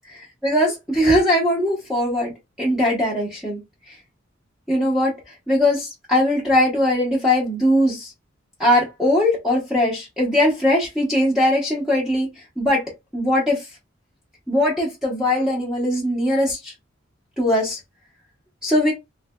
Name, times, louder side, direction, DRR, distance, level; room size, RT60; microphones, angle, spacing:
voice 1, 0.4-2.3 2.6-3.6 3.9-4.0 4.7-5.1 5.5-8.1 8.6-12.3 12.6-12.8 13.1-13.7 14.5-16.7 17.4-17.8 18.6-18.9, left 1 dB, ahead, 1.0 m, -20 dB
3.3 x 3.3 x 2.3 m
head